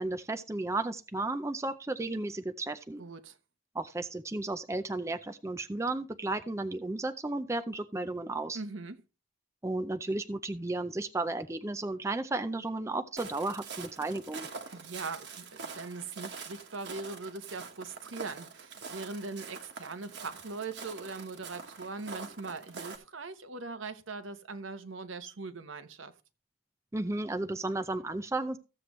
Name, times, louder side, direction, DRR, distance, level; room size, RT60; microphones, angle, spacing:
voice 1, 0.0-3.0 3.7-8.6 9.6-14.5 26.9-28.6, right 2 dB, 15° right, 0.4 m, -34 dB
voice 2, 3.0-3.4 8.5-9.0 14.7-26.1, right 3 dB, 70° right, 1.0 m, -41 dB
Walk footsteps, 13.2-23.0, right 5 dB, 55° right, 1.3 m, -45 dB
14.5 x 7.7 x 3.1 m
head